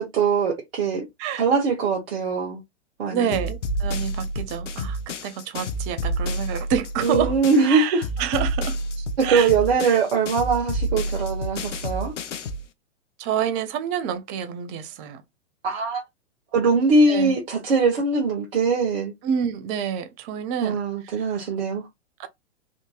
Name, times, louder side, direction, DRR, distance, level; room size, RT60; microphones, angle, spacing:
voice 1, 0.0-1.1 1.4-2.6 3.0-3.4 7.0-8.0 9.2-12.1 15.6-16.0 16.5-19.1 20.6-21.9, right 4 dB, 55° right, 1.1 m, -22 dB
voice 2, 3.1-7.4 7.6-8.8 9.2-9.5 9.8-10.0 13.2-15.2 17.1-17.4 19.2-20.8 21.1-21.5 22.2-22.3, right 8 dB, 20° right, 0.4 m, -28 dB
sound 1, 3.3-7.7 8.0-12.7, equal, 80° left, 0.6 m, -29 dB
3.5 x 2.6 x 2.3 m
figure-of-eight pair, 105°, 36 cm